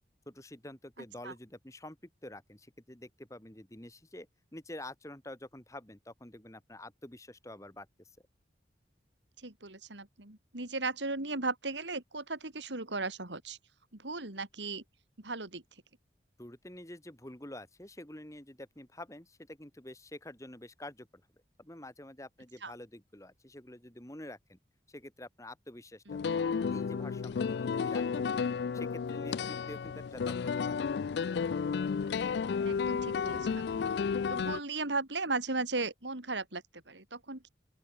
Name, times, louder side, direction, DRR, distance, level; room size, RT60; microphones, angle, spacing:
voice 1, 0.3-8.1 16.4-21.2 21.6-24.6 24.9-28.5 28.7-30.9, left 1 dB, 15° left, 1.8 m, -48 dB
voice 2, 9.4-13.6 13.9-14.8 15.2-15.6 22.6-22.7 26.1-26.2 32.7-33.9 34.3-37.5, right 3 dB, 85° right, 3.6 m, -36 dB
sound 1, 26.1-34.6, left 6 dB, 70° left, 0.3 m, -32 dB
open air
head